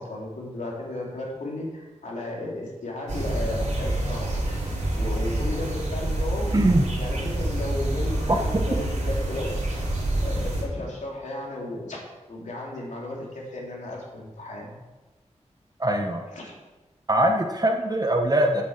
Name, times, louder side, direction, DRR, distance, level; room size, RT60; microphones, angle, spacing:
voice 1, 0.0-4.4 5.0-6.5 7.0-9.6 10.2-12.0 12.3-14.7 16.3-16.5, left 2 dB, 85° left, -3 dB, 3.1 m, -34 dB
sound 1, 3.1-10.6, right 1 dB, 90° right, 3.3 m, -27 dB
voice 2, 6.5-6.8 8.3-8.4 15.8-16.2 17.1-18.6, right 1 dB, 30° right, 3 dB, 1.2 m, -22 dB
8.6 x 7.3 x 7.5 m, 1.2 s
wide cardioid pair, 70°, 12 cm